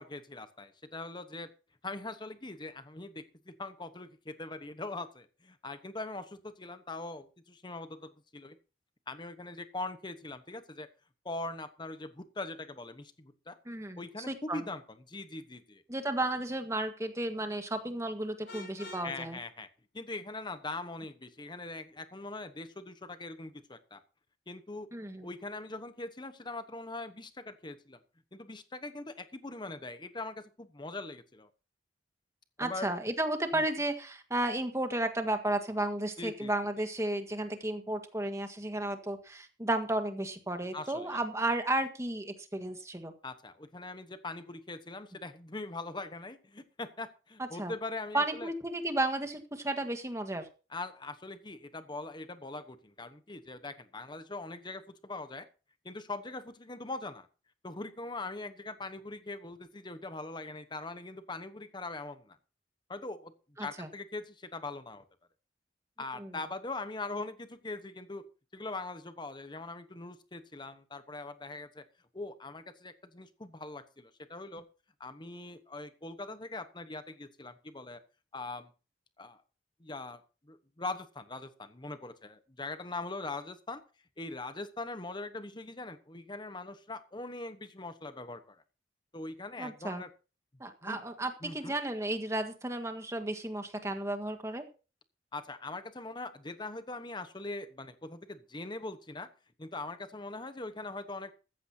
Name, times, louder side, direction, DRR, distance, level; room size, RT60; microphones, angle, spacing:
voice 1, 0.0-1.5 1.8-8.6 9.1-10.9 11.2-13.6 14.0-14.8 15.1-15.8 19.0-19.7 19.9-24.0 24.5-24.9 25.2-28.0 28.3-31.5 32.6-32.9 33.5-33.6 36.2-36.5 40.7-41.2 43.2-48.5 50.7-55.5 55.8-57.3 57.6-62.4 62.9-63.3 63.6-65.0 66.0-68.2 68.5-71.8 72.1-74.6 75.0-78.0 78.3-78.7 79.2-79.4 79.8-83.8 84.2-88.6 89.1-90.1 90.8-91.0 91.4-91.7 95.3-99.3 99.6-101.3, left 2 dB, 25° left, 11 dB, 1.1 m, -41 dB
voice 2, 13.6-14.6 15.9-19.4 24.9-25.3 32.6-43.1 47.4-47.7 48.1-50.5 63.6-63.9 66.2-66.4 89.6-90.0 90.6-94.6, right 1 dB, 15° right, 6 dB, 1.7 m, -33 dB
Vehicle horn car horn honking, 18.5-19.1, left 1 dB, 60° left, 7.4 m, -45 dB
14.5 x 14.5 x 2.8 m, 0.33 s
head